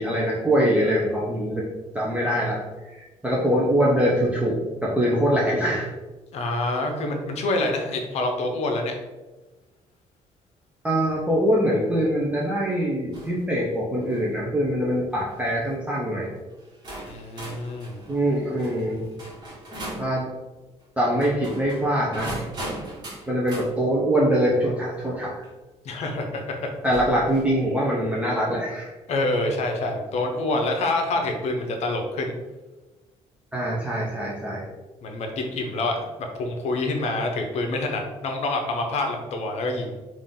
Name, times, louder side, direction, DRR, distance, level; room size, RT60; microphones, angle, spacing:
voice 1, 0.0-1.6 1.9-2.6 2.9-5.9 10.8-16.3 18.1-19.0 20.0-20.3 21.0-22.4 23.3-25.4 26.8-28.9 33.5-34.7, equal, 10° right, -5 dB, 0.6 m, -23 dB
voice 2, 6.3-8.9 17.1-18.0 25.8-26.7 29.1-32.3 35.0-39.9, left 2 dB, 60° left, 3 dB, 0.7 m, -27 dB
sound 1, 13.1-13.4 13.9-14.3 15.1-15.4 16.2-16.3 16.8-20.1 21.1-23.7 25.4-25.5 26.8-27.5, right 1 dB, 35° right, 1.3 m, -38 dB
3.7 x 2.5 x 3.6 m, 1.2 s
cardioid pair, 145°, 12 cm